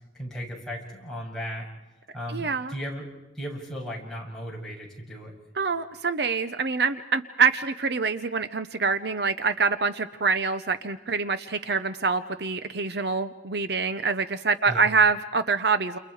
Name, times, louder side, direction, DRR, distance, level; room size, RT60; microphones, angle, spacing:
voice 1, 0.1-1.7 2.1-3.1 3.3-5.3 14.7-14.8, equal, 5° left, -4 dB, 7.5 m, -36 dB
voice 2, 2.3-2.7 5.6-16.0, right 4 dB, 60° right, 11 dB, 0.9 m, -25 dB
30.0 x 29.5 x 4.9 m, 1.0 s
head